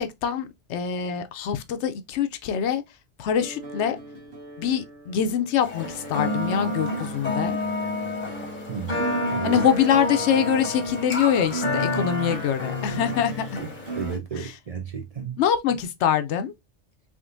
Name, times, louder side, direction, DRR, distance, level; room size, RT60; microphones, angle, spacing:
voice 1, 0.0-2.8 3.2-4.0 4.6-7.6 9.4-13.4 15.4-16.5, left 8 dB, 80° left, 0.9 m, -24 dB
sound 1, 3.3-14.1, right 3 dB, 65° right, 1.4 m, -38 dB
sound 2, 5.6-14.2, left 2 dB, 40° left, 1.0 m, -29 dB
voice 2, 8.7-9.6 11.9-12.1 12.9-13.1 13.6-13.7 14.0-15.4, right 6 dB, 45° right, 0.5 m, -33 dB
3.6 x 3.5 x 2.5 m
omnidirectional pair, 1.2 m